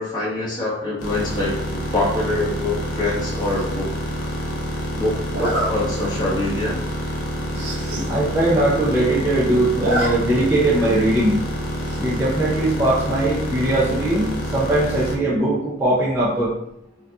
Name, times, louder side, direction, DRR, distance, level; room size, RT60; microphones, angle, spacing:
voice 1, 0.0-3.9 4.2-4.3 4.9-6.8, left 2 dB, 20° left, -7 dB, 0.8 m, -25 dB
sound 1, 1.0-15.2, equal, 80° left, 0.7 m, -27 dB
Zipper (clothing), 3.4-3.8 5.3-5.7 6.3-6.4 6.8-6.9 7.1-7.2 7.5-8.1 8.4-8.5 8.7-9.3 9.6-10.1 10.4-10.5 11.8-12.2, right 1 dB, 60° right, 0.6 m, -27 dB
voice 2, 8.1-11.4 12.0-16.5, right 1 dB, 10° right, -8 dB, 0.4 m, -20 dB
2.7 x 2.3 x 3.4 m, 0.78 s
head